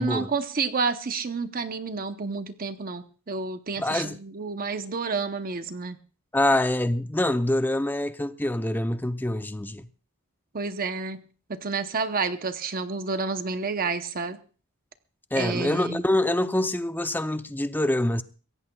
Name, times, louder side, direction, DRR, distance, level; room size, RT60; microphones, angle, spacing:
voice 1, 0.0-6.0 10.5-14.4 15.3-16.0, right 4 dB, 40° right, 0.8 m, -30 dB
voice 2, 3.8-4.2 6.3-9.9 15.3-18.2, left 1 dB, 10° left, 0.6 m, -25 dB
23.0 x 17.0 x 2.3 m
head